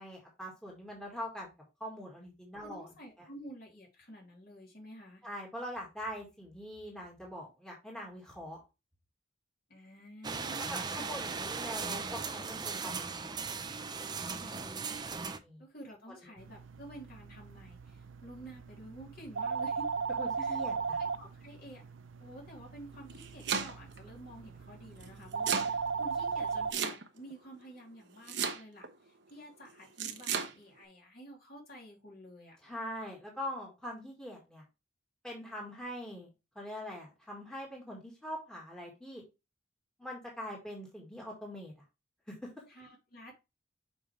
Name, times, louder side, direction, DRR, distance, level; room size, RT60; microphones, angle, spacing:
voice 1, 0.0-1.5 1.8-3.3 5.2-8.6 10.7-13.2 15.4-15.6 16.2-16.3 20.2-21.0 32.6-34.6 35.2-39.2 40.0-41.7 42.3-42.5, equal, 5° left, -1 dB, 1.9 m, -43 dB
voice 2, 2.6-5.2 9.7-11.2 14.3-19.9 20.4-20.6 21.2-21.8 22.2-32.6 42.7-43.3, right 1 dB, 50° left, -1 dB, 3.1 m, -50 dB
sound 1, 10.2-15.4, right 5 dB, 20° right, 0.6 m, -38 dB
sound 2, 16.4-26.7, right 5 dB, 85° right, 0.5 m, -38 dB
Domestic sounds home sounds, 22.9-24.0 25.0-25.7 26.7-27.3 28.3-28.9 30.0-30.5, right 6 dB, 65° right, 1.0 m, -33 dB
7.2 x 5.0 x 3.2 m, 0.26 s
head